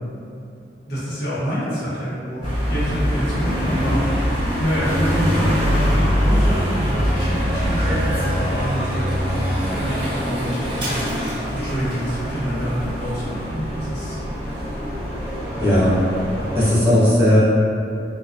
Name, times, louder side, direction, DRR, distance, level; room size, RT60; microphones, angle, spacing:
voice 1, 0.9-11.2 11.5-14.2 14.4-14.6 15.5-15.7, equal, 70° left, -9 dB, 0.8 m, -27 dB
sound 1, 2.4-16.7, equal, 30° right, 1.2 m, -23 dB
voice 2, 15.6-16.0 16.5-17.4, left 1 dB, 15° right, -12 dB, 0.6 m, -16 dB
2.5 x 2.1 x 2.4 m, 2.6 s
head